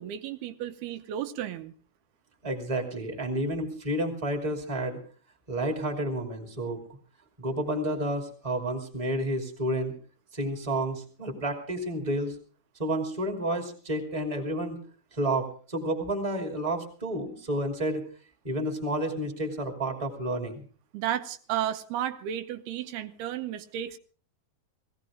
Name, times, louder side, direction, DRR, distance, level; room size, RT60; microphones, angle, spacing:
voice 1, 0.0-1.7 20.9-24.0, right 11 dB, 85° right, 9 dB, 2.8 m, -33 dB
voice 2, 2.4-5.0 5.5-6.8 7.4-9.9 10.3-12.4 12.8-14.8 15.1-18.0 18.4-20.6, right 1 dB, 10° right, 4 dB, 2.2 m, -30 dB
18.5 x 16.5 x 3.7 m, 0.41 s
omnidirectional pair, 4.5 m